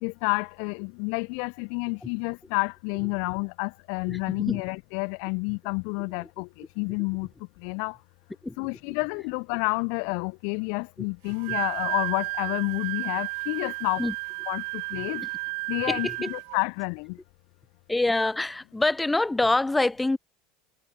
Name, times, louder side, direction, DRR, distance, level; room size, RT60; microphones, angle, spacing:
voice 1, 0.0-7.3 7.6-8.0 8.6-14.0 14.5-15.2 15.7-17.2, left 40 dB or more, 60° left, 0.3 m, -29 dB
voice 2, 4.1-4.6 8.4-8.6 11.5-11.6 14.0-14.1 15.2-15.3 15.9-16.3 17.9-20.2, left 2 dB, 5° left, 0.6 m, -26 dB
Wind instrument woodwind instrument, 11.3-16.6, right 33 dB, 65° right, 0.4 m, -32 dB
supercardioid pair, 155°, 0 cm